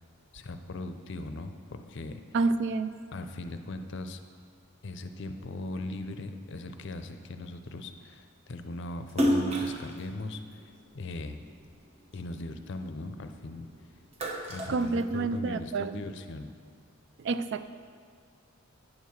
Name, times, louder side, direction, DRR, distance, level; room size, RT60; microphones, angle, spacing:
voice 1, 0.3-2.2 3.1-4.2 4.8-11.4 12.1-13.7 14.5-16.5, left 2 dB, 55° left, 8 dB, 0.5 m, -39 dB
voice 2, 2.3-2.9 14.7-16.0 17.2-17.7, right 3 dB, 60° right, 12 dB, 0.3 m, -29 dB
Splash splatter, 9.1-11.6 12.1-13.5 13.9-15.6, equal, 30° right, 0.9 m, -31 dB
9.6 x 4.7 x 7.0 m, 2.1 s
head